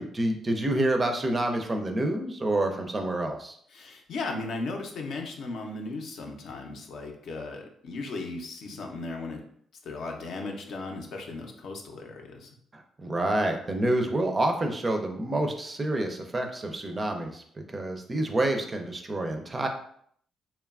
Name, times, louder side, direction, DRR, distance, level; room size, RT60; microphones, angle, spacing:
voice 1, 0.0-3.6 12.7-17.4 17.7-19.7, right 1 dB, 25° right, 4 dB, 0.4 m, -28 dB
voice 2, 3.7-9.4 9.8-12.5, left 3 dB, 70° left, 2 dB, 0.5 m, -36 dB
2.9 x 2.3 x 2.3 m, 0.65 s
cardioid pair, 90°, 0 cm